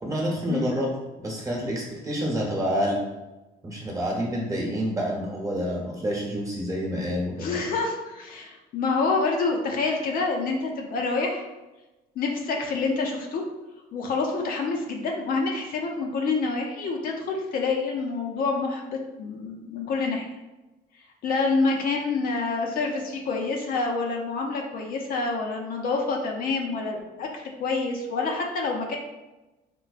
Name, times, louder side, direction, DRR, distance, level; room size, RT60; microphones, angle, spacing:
voice 1, 0.0-0.9 1.2-3.0 3.6-7.6, equal, 20° right, -3 dB, 1.0 m, -28 dB
voice 2, 7.4-11.4 12.2-13.4 13.9-20.3 21.2-29.0, left 3 dB, 60° left, 1 dB, 0.6 m, -27 dB
4.6 x 2.2 x 2.4 m, 1.1 s
cardioid pair, 110°, 17 cm